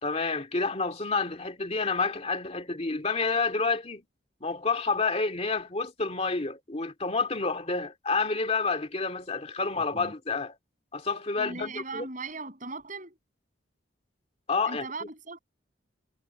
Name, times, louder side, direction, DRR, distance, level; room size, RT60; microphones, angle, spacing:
voice 1, 0.0-4.0 4.4-10.6 10.9-12.0 14.5-14.8, left 4 dB, 30° left, 2.4 m, -29 dB
voice 2, 11.4-13.2 14.7-15.4, right 3 dB, 40° right, 7.7 m, -38 dB
head